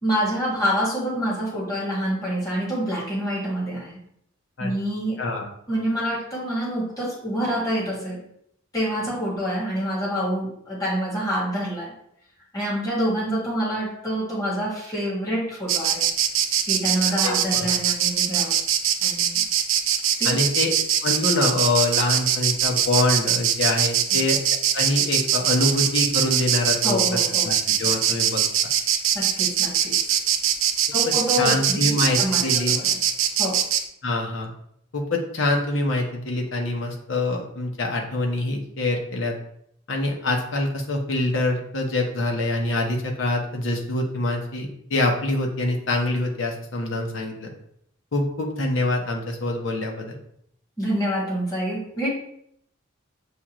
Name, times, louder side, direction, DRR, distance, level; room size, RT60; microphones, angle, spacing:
voice 1, 0.0-4.0 4.6-5.2 5.7-8.2 8.7-11.9 12.5-16.1 16.6-18.6 19.0-19.4 20.2-20.4 24.1-24.2 26.8-27.5 28.1-28.2 29.1-30.0 30.9-31.9 32.2-32.5 32.7-33.0 33.4-33.6 50.8-52.1, equal, 20° left, -5 dB, 1.6 m, -26 dB
voice 2, 5.2-5.5 17.1-17.7 20.2-20.7 21.0-24.4 24.7-27.2 27.4-28.4 31.0-32.8 34.0-34.5 34.9-39.3 39.9-47.5 48.1-50.2, left 2 dB, 65° left, 1 dB, 0.9 m, -25 dB
Insect, 15.7-33.8, right 9 dB, 75° right, 0.4 m, -22 dB
6.9 x 2.4 x 2.9 m, 0.71 s
head